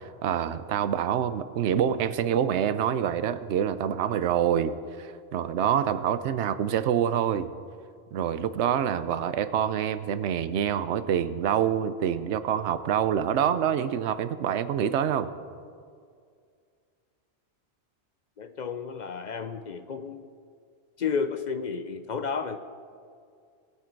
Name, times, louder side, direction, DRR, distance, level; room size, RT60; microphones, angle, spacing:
voice 1, 0.2-7.5 8.1-15.3, right 9 dB, 90° right, 13 dB, 0.9 m, -26 dB
voice 2, 18.4-20.3 21.0-22.6, left 5 dB, 55° left, 10 dB, 0.5 m, -32 dB
21.0 x 7.5 x 4.5 m, 2.2 s
omnidirectional pair, 1.1 m